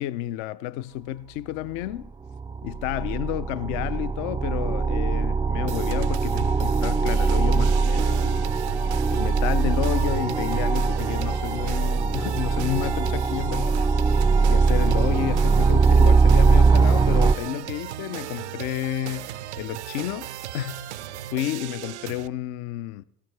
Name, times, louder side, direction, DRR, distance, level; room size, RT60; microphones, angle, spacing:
voice 1, 0.0-2.1 2.6-8.5 9.1-13.8 14.4-20.3 20.5-20.9 21.2-23.0, left 13 dB, 60° left, 0.6 m, -31 dB
sound 1, 2.0-2.1 2.3-17.3, right 4 dB, 15° right, 0.4 m, -21 dB
sound 2, 5.7-22.3, right 12 dB, 85° right, 0.5 m, -37 dB
15.5 x 14.0 x 3.3 m
hypercardioid pair, 65°, 33 cm